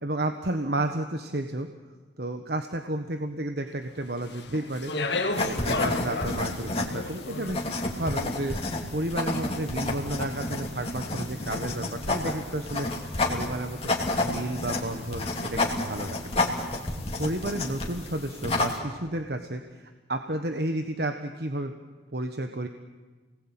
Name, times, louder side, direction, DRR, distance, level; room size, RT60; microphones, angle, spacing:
voice 1, 0.0-1.7 2.2-4.9 5.4-7.7 8.0-8.6 8.9-13.8 14.2-16.4 17.2-21.7 22.1-22.7, right 1 dB, 60° right, 6 dB, 1.4 m, -32 dB
Speech, 4.2-8.5, left 3 dB, 70° left, 2.0 m, -33 dB
sound 1, 5.3-18.8, left 2 dB, 35° left, 3.1 m, -30 dB
28.5 x 20.0 x 9.0 m, 1.3 s
head